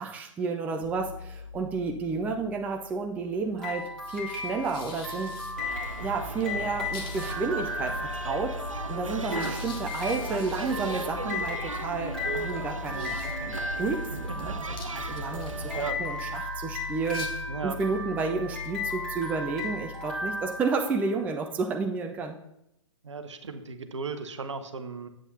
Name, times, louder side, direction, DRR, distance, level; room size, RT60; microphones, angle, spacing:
voice 1, 0.0-5.4 6.0-8.6 8.9-22.4, right 4 dB, 10° right, 3 dB, 0.4 m, -31 dB
sound 1, 0.8-20.7, left 4 dB, 45° left, 1.2 m, -41 dB
sound 2, 3.6-21.3, left 2 dB, 5° left, 1.7 m, -36 dB
sound 3, 5.6-15.9, right 3 dB, 85° right, 0.5 m, -37 dB
voice 2, 15.7-16.1 17.5-17.8 23.0-25.1, right 4 dB, 65° right, 8 dB, 0.9 m, -35 dB
9.7 x 7.5 x 2.7 m, 0.84 s
figure-of-eight pair, 115°, 16 cm